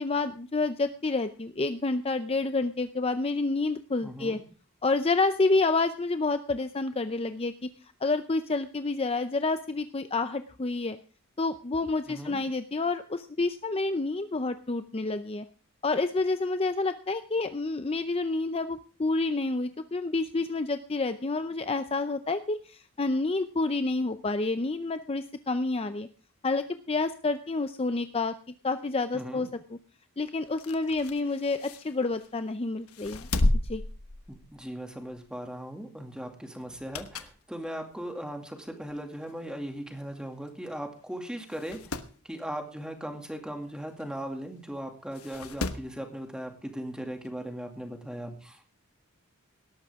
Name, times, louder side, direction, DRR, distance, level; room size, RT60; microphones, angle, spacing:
voice 1, 0.0-4.4 4.8-7.7 8.0-11.0 11.4-15.5 15.8-26.1 26.4-28.3 28.6-29.8 30.2-33.3 33.7-33.8, left 3 dB, 25° left, 10 dB, 0.5 m, -29 dB
voice 2, 4.0-4.4 12.1-12.4 29.1-29.5 34.3-41.8 42.2-48.7, equal, 5° right, 4 dB, 2.3 m, -38 dB
sound 1, 30.4-32.4 32.9-34.8 35.1-35.3 36.6-37.4 37.9-38.0 38.9-39.0 39.2-39.3 39.5-39.6 40.5-40.7 41.0-41.1 41.5-42.1 44.0-44.1 45.1-45.9 47.2-47.3, left 2 dB, 80° left, 1.2 m, -32 dB
18.5 x 13.0 x 3.6 m, 0.38 s
head